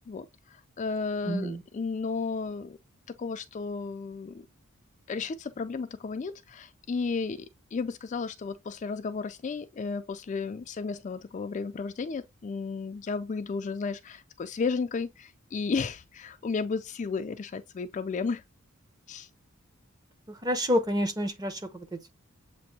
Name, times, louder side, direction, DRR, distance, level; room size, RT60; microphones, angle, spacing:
voice 1, 0.1-2.8 3.1-4.4 5.1-7.5 7.7-18.4 19.1-19.3, left 4 dB, 35° left, 0.3 m, -33 dB
voice 2, 1.3-1.6 20.3-22.1, equal, 20° right, 0.7 m, -29 dB
7.5 x 2.6 x 2.7 m
head